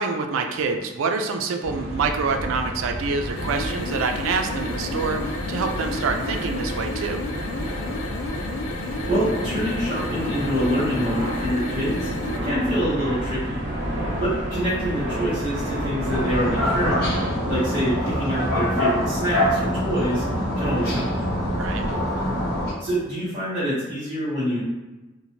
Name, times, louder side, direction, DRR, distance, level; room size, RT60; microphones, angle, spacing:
voice 1, 0.0-7.2 21.6-21.8, right 4 dB, 90° right, 5 dB, 0.3 m, -26 dB
sound 1, 1.6-17.2, equal, 65° right, 0.9 m, -30 dB
sound 2, 3.3-12.5, left 3 dB, 90° left, 0.3 m, -32 dB
voice 2, 8.8-13.6 14.2-17.1 17.4-20.2 20.6-21.1 22.8-24.6, equal, 25° right, -10 dB, 0.7 m, -26 dB
sound 3, 16.0-22.7, equal, 55° left, 1.0 m, -24 dB
2.9 x 2.1 x 2.7 m, 1.1 s
head